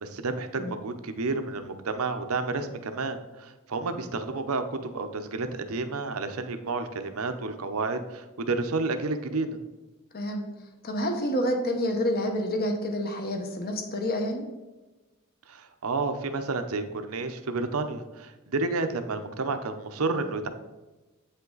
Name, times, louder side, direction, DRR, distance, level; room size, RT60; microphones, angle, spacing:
voice 1, 0.0-9.5 15.5-20.5, right 3 dB, 75° right, 8 dB, 0.8 m, -30 dB
voice 2, 10.1-10.4 10.8-14.5, equal, 45° left, 4 dB, 1.2 m, -28 dB
8.3 x 5.7 x 3.9 m, 1.1 s
head